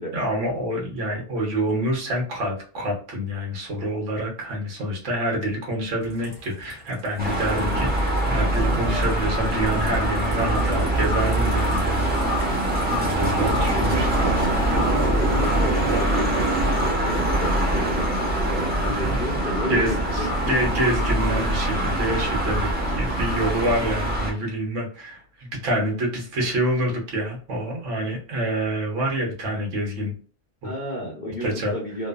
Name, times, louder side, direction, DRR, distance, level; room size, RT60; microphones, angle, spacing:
voice 1, 0.1-12.0 12.8-14.1 17.9-18.0 18.6-19.2 19.7-30.1 30.6-30.7 31.2-31.7, right 1 dB, 70° right, 0 dB, 1.3 m, -27 dB
sound 1, 6.0-16.9, right 2 dB, 45° right, 1.2 m, -33 dB
sound 2, 7.2-24.3, right 1 dB, 10° right, 0.5 m, -24 dB
sound 3, 7.7-15.0 15.3-15.7 16.0-17.0 17.3-17.7 18.0-18.4 18.7-19.8 20.1-22.0 22.3-22.7 23.1-23.5 23.9-24.4, left 4 dB, 75° left, 1.0 m, -35 dB
voice 2, 15.2-18.1 18.5-20.6 30.6-32.1, left 1 dB, 50° left, -2 dB, 0.6 m, -32 dB
3.1 x 2.0 x 2.3 m, 0.42 s
omnidirectional pair, 1.3 m